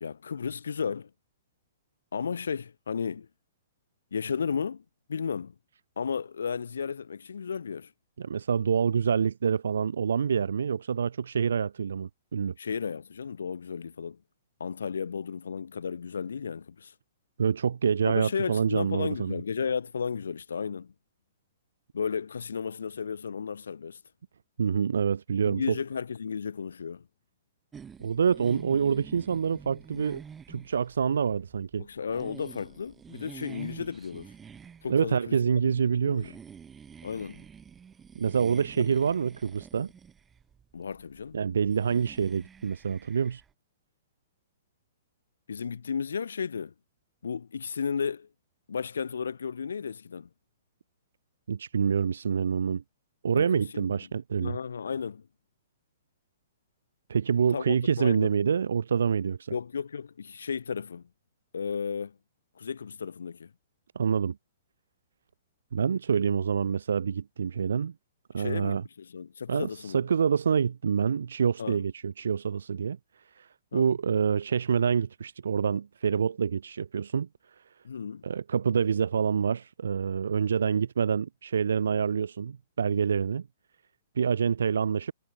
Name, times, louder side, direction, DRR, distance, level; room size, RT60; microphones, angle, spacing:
voice 1, 0.0-1.1 2.1-3.3 4.1-4.8 5.1-5.5 6.0-7.9 12.6-14.2 14.6-16.9 18.0-20.9 21.9-24.0 25.4-27.1 31.8-34.3 34.8-35.7 36.0-36.4 37.0-37.4 38.8-38.9 40.7-41.4 45.5-46.7 47.2-48.3 48.7-50.3 53.3-54.0 54.4-55.3 57.5-58.3 59.5-61.1 61.5-62.2 62.6-63.5 68.4-70.0 71.6-71.8 73.7-73.9 77.8-78.2, left 6 dB, 75° left, 0.6 m, -34 dB
voice 2, 8.2-12.5 17.4-19.3 24.6-25.8 28.0-30.2 30.5-31.9 34.9-36.4 38.2-39.9 41.3-43.4 51.5-52.8 53.2-54.6 57.1-59.5 64.0-64.4 65.7-67.9 68.3-68.8 69.5-69.7 69.9-73.0 73.4-73.5 73.7-77.3 78.2-83.5 84.2-85.1, right 7 dB, 70° right, 0.4 m, -26 dB
sound 1, 27.7-43.5, right 7 dB, 15° right, 6.1 m, -49 dB
figure-of-eight pair, 120°, 0 cm